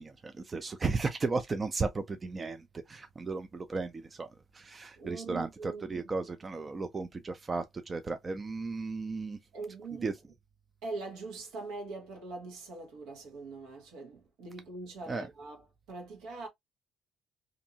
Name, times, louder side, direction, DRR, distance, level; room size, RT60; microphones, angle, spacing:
voice 1, 0.0-2.6 2.9-4.3 4.5-9.4 10.0-10.1 15.1-15.3, right 3 dB, 35° right, 0.4 m, -34 dB
voice 2, 5.0-6.0 9.5-10.2 10.8-16.5, right 3 dB, 80° right, 1.2 m, -42 dB
2.6 x 2.6 x 2.7 m
supercardioid pair, 65°, 0 cm